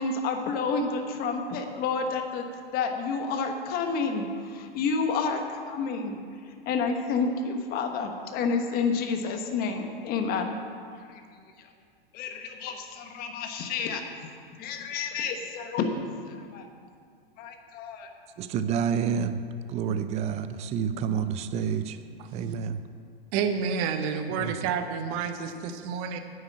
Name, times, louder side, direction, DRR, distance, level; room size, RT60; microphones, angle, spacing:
voice 1, 0.0-2.4 2.7-5.4 5.7-6.2 6.6-10.5 10.9-11.2 11.6-11.7 12.1-14.0 14.6-16.0 16.5-16.7 17.4-18.1, left 5 dB, 30° left, 5 dB, 1.3 m, -29 dB
voice 2, 18.4-19.4 19.7-22.0 22.3-22.8 24.4-24.6, right 7 dB, 20° right, 11 dB, 0.5 m, -28 dB
voice 3, 23.3-26.2, right 6 dB, 40° right, 7 dB, 1.1 m, -29 dB
10.0 x 7.4 x 8.6 m, 2.2 s
hypercardioid pair, 125°, 30 cm